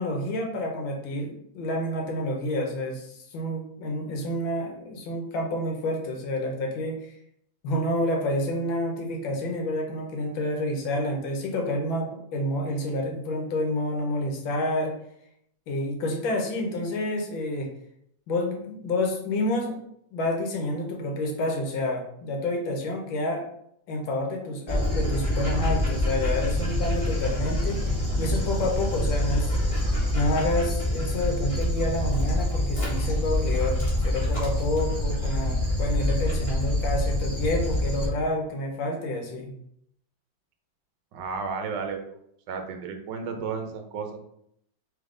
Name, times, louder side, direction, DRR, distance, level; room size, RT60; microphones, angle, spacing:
voice 1, 0.0-7.1 7.6-15.0 15.7-17.7 18.3-19.8 20.1-23.4 23.9-27.8 28.2-29.5 30.1-39.5, left 1 dB, 90° left, 1 dB, 1.7 m, -29 dB
Dog, 24.7-38.1, left 1 dB, 20° left, 1.2 m, -26 dB
voice 2, 41.1-42.2 42.5-44.2, right 5 dB, 70° right, 5 dB, 1.3 m, -33 dB
3.7 x 3.5 x 3.7 m, 0.72 s
omnidirectional pair, 2.1 m